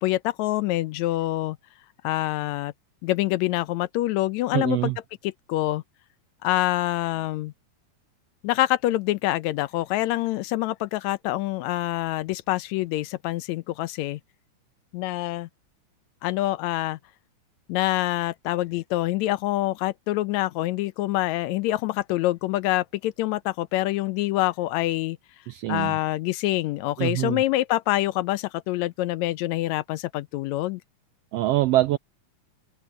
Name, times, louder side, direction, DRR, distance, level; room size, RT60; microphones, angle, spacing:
voice 1, 0.0-1.6 2.0-2.7 3.0-4.9 5.2-5.8 6.4-7.5 8.4-14.2 14.9-15.5 16.2-17.0 17.7-25.2 25.7-30.8, left 16 dB, 80° left, 1.9 m, -26 dB
voice 2, 4.5-5.0 25.5-25.9 27.0-27.4 31.3-32.0, right 16 dB, 85° right, 1.4 m, -24 dB
omnidirectional pair, 3.3 m